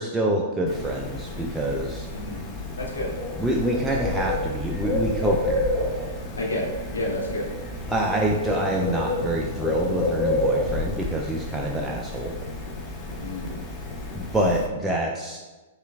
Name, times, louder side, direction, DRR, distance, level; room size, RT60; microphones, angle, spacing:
voice 1, 0.0-2.1 3.4-5.6 7.9-12.3 14.1-15.4, right 1 dB, 5° right, -2 dB, 0.3 m, -26 dB
Bird, 0.7-14.7, left 2 dB, 20° left, 0.7 m, -30 dB
voice 2, 2.1-2.4 2.8-3.2 6.4-7.5 13.2-13.6, left 1 dB, 80° left, -2 dB, 0.8 m, -30 dB
5.6 x 2.3 x 2.3 m, 1.2 s
figure-of-eight pair, 110°, 0 cm